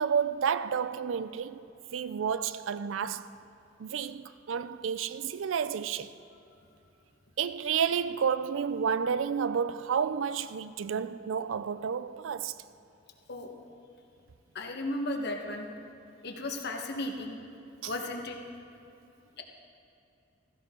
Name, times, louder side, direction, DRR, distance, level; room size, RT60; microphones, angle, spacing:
voice 1, 0.0-1.6 1.9-3.3 3.8-6.1 7.4-12.6 17.8-17.9, right 7 dB, 80° right, 0.4 m, -30 dB
voice 2, 14.5-15.7 16.2-17.4 17.8-18.4, left 1 dB, 60° left, 1.3 m, -35 dB
15.5 x 15.5 x 3.8 m
head